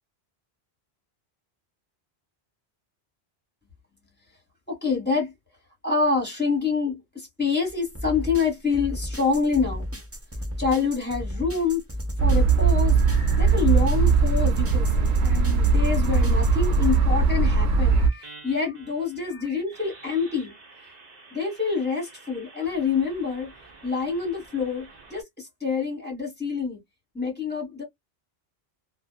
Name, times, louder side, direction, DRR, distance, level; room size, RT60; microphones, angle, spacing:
voice 1, 4.7-5.3 5.8-9.8 10.6-11.9 12.2-13.0 13.4-20.5 21.3-23.5 23.8-26.8 27.1-27.8, left 5 dB, 10° left, 1.5 m, -27 dB
sound 1, 7.7-17.0, left 1 dB, 15° right, 0.7 m, -34 dB
sound 2, 12.2-18.1, right 4 dB, 90° right, 0.9 m, -20 dB
sound 3, 12.8-13.7 14.6-25.2, right 3 dB, 45° right, 1.0 m, -48 dB
2.6 x 2.3 x 2.3 m
omnidirectional pair, 1.1 m